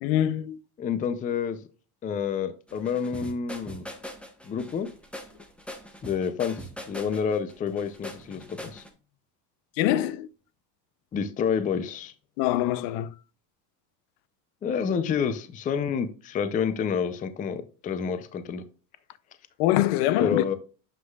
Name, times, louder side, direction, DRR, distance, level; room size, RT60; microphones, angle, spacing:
voice 1, 0.0-0.6 9.8-10.3 12.4-13.1 19.6-20.6, left 13 dB, 70° left, 0.6 m, -24 dB
voice 2, 0.8-1.6 2.0-3.8 4.4-4.9 6.0-6.6 6.9-8.8 11.1-12.1 14.6-18.6 20.2-20.5, left 7 dB, 20° left, 0.4 m, -28 dB
sound 1, 2.7-8.9, equal, ahead, 0.8 m, -41 dB
7.5 x 6.2 x 2.3 m
supercardioid pair, 125°, 48 cm